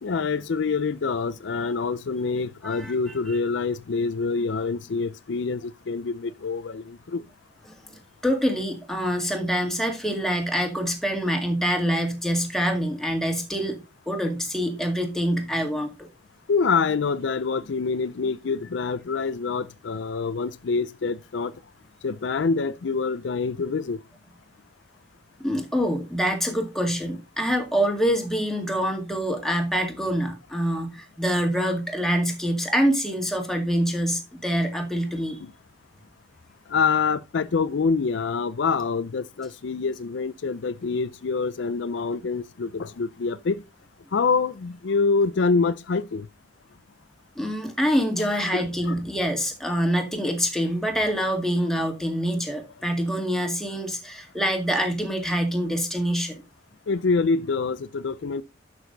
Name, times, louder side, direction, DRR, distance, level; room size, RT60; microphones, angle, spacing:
voice 1, 0.0-7.2 16.5-21.5 22.0-24.0 35.4-35.5 36.7-43.6 44.1-46.3 48.3-48.9 56.9-58.4, left 4 dB, 65° left, 0.4 m, -26 dB
voice 2, 2.6-2.9 7.7-16.1 25.4-35.4 47.4-56.4, equal, ahead, 2.0 m, -25 dB
11.5 x 6.2 x 3.9 m
head